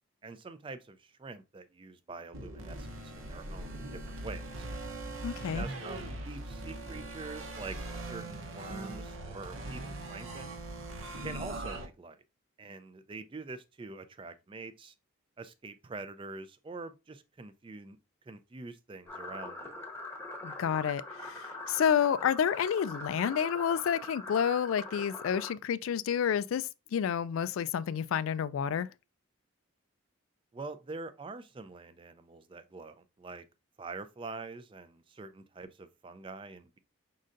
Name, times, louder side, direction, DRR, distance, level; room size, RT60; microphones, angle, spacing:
voice 1, 0.2-4.7 5.5-10.6 11.2-12.2 12.6-14.9 15.4-18.0 18.3-19.7 30.5-33.5 33.8-36.8, right 3 dB, 25° right, 0.3 m, -45 dB
sound 1, 2.3-11.9, right 2 dB, 75° right, 0.8 m, -41 dB
voice 2, 5.2-5.6 20.4-28.9, left 8 dB, 75° left, 0.3 m, -30 dB
sound 2, 19.1-25.5, left 2 dB, 10° left, 0.9 m, -42 dB
5.3 x 3.8 x 2.5 m
head